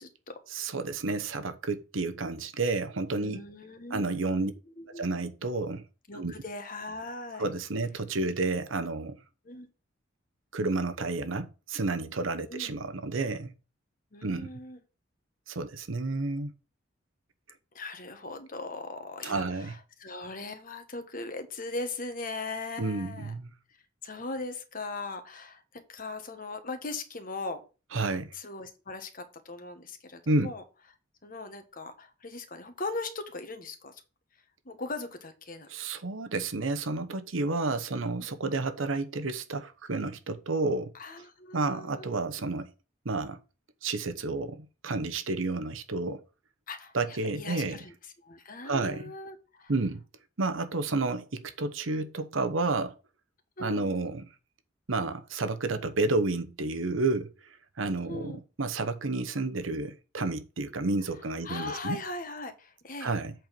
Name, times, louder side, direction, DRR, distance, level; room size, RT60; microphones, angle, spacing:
voice 1, 0.0-0.4 3.2-5.1 6.1-7.5 9.4-9.7 12.5-12.7 14.1-14.8 17.7-23.3 24.0-27.6 28.3-30.6 31.2-34.0 34.6-35.7 38.2-38.3 40.9-42.1 46.7-47.9 48.2-49.7 53.6-53.9 58.1-58.4 61.4-63.1, left 3 dB, 45° left, 1.3 m, -39 dB
voice 2, 0.5-3.4 3.9-4.5 4.9-5.8 6.1-6.3 7.4-9.2 10.5-13.5 14.2-14.5 15.5-16.5 19.2-19.8 22.8-23.5 27.9-28.3 30.3-30.5 35.7-40.9 41.5-42.7 43.0-43.4 43.8-46.2 46.9-47.8 48.6-49.1 49.7-50.0 50.4-52.9 53.6-54.3 54.9-62.0 63.0-63.3, right 3 dB, 85° right, 1.0 m, -31 dB
7.9 x 4.5 x 5.2 m
head